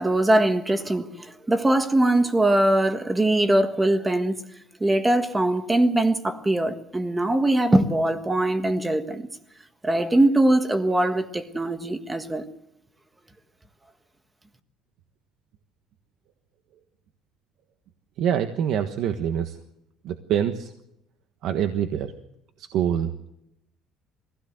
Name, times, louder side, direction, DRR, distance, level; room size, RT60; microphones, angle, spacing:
voice 1, 0.0-4.4 4.8-9.3 9.8-12.4, right 1 dB, 10° right, 1.5 m, -22 dB
voice 2, 18.2-19.6 20.0-20.7 21.4-22.1 22.6-23.1, right 9 dB, 65° right, 1.4 m, -25 dB
22.0 x 16.5 x 7.9 m
cardioid pair, 145°, 0 cm